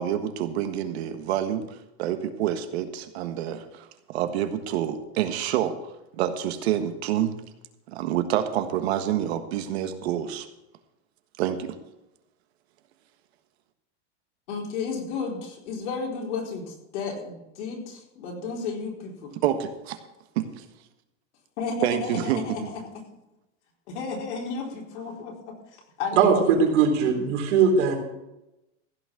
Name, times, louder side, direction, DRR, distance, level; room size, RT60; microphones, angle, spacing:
voice 1, 0.0-5.8 6.2-7.4 7.9-10.4 11.4-11.8 19.4-20.0 20.3-20.6 21.8-22.4, right 10 dB, 60° right, 8 dB, 1.5 m, -27 dB
voice 2, 14.5-19.3 21.6-22.8 23.9-25.6 26.0-26.6, left 5 dB, 70° left, 0 dB, 4.3 m, -33 dB
voice 3, 26.2-28.0, right 6 dB, 85° right, 2 dB, 3.7 m, -20 dB
15.5 x 6.2 x 7.7 m, 0.93 s
supercardioid pair, 165°, 36 cm